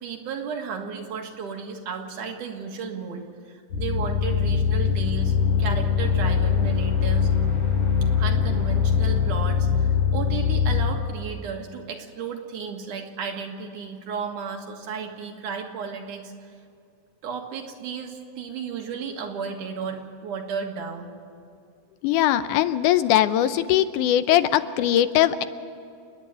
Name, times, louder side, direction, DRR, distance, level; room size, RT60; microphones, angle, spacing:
voice 1, 0.0-7.3 8.2-16.5 17.2-21.1, right 6 dB, 80° right, 2 dB, 3.2 m, -34 dB
sound 1, 3.7-10.9, left 6 dB, 50° left, 8.5 m, -22 dB
voice 2, 22.0-25.4, left 12 dB, 85° left, 12 dB, 2.2 m, -20 dB
29.5 x 10.0 x 9.1 m, 2.4 s
omnidirectional pair, 3.6 m